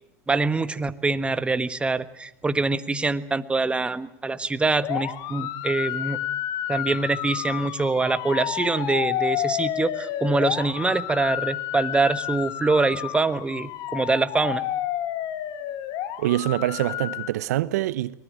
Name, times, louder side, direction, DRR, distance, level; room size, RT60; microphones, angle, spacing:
voice 1, 0.3-6.2 6.7-14.6, right 3 dB, 10° right, 1.4 m, -24 dB
sound 1, 4.8-17.3, left 12 dB, 50° left, 2.4 m, -30 dB
voice 2, 16.2-18.1, right 14 dB, 70° right, 0.9 m, -25 dB
24.0 x 19.5 x 9.0 m
hypercardioid pair, 100°, 9 cm